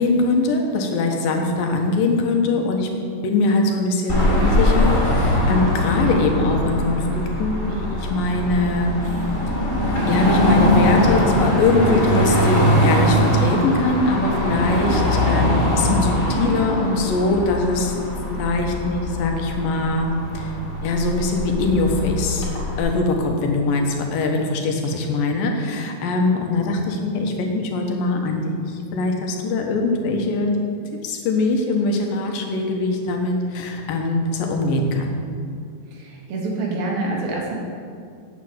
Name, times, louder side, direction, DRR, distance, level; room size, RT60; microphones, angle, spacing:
voice 1, 0.0-2.9 3.2-8.9 10.1-17.9 18.2-20.5 20.8-22.5 22.8-30.6 31.0-35.2, left 2 dB, 75° left, 2 dB, 2.9 m, -22 dB
Car passing by / Traffic noise roadway noise / Engine, 4.1-22.8, left 1 dB, 25° left, 2.2 m, -21 dB
voice 2, 35.9-37.5, right 2 dB, 85° right, -2 dB, 3.7 m, -26 dB
8.6 x 8.2 x 7.8 m, 2.3 s
omnidirectional pair, 4.1 m